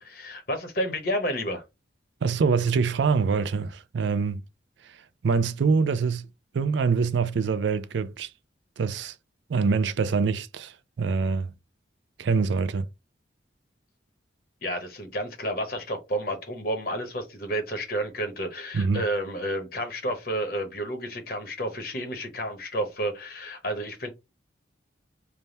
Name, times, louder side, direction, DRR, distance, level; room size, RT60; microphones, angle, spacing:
voice 1, 0.0-1.6 14.6-24.1, equal, 55° left, 0.9 m, -31 dB
voice 2, 2.2-4.4 5.2-6.3 6.5-8.3 8.8-9.1 9.5-11.5 12.2-12.8 18.7-19.0, right 5 dB, 75° right, 0.4 m, -24 dB
3.4 x 2.1 x 4.0 m
head